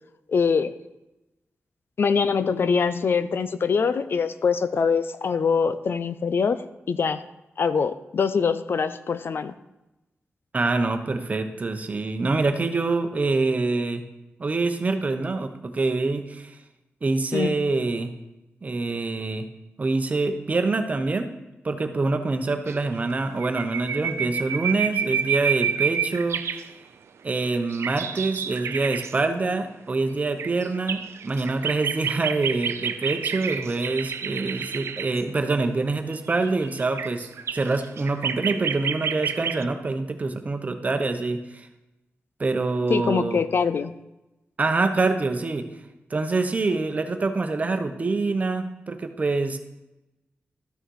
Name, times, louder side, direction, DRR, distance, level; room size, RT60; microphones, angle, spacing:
voice 1, 0.3-0.7 2.0-6.6 6.9-7.2 7.6-9.5 17.3-17.5 42.9-43.9, left 5 dB, 60° left, 13 dB, 0.5 m, -23 dB
voice 2, 10.5-14.0 14.4-16.6 17.0-18.1 18.6-19.4 19.8-21.3 21.6-26.4 27.2-41.7 42.4-43.4 44.6-45.7 46.1-49.6, right 3 dB, 35° right, 7 dB, 0.9 m, -25 dB
sound 1, 22.7-22.8 23.0-23.1 23.4-26.6 27.3-29.2 30.2-35.2 36.1-39.6, right 7 dB, 85° right, 0.5 m, -29 dB
13.0 x 6.5 x 4.7 m, 0.96 s
wide cardioid pair, 140°, 4 cm